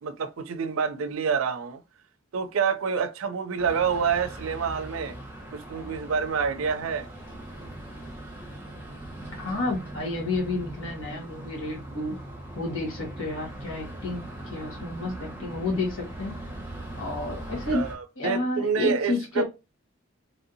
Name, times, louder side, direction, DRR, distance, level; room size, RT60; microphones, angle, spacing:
voice 1, 0.0-1.8 2.3-5.2 5.5-7.1 17.7-19.4, right 6 dB, 85° right, 0.4 m, -27 dB
sound 1, 3.6-17.9, right 1 dB, 10° right, 1.1 m, -40 dB
voice 2, 9.4-12.1 12.5-16.3 17.0-17.8 18.2-19.4, left 2 dB, 75° left, 1.5 m, -30 dB
3.2 x 2.7 x 2.6 m
head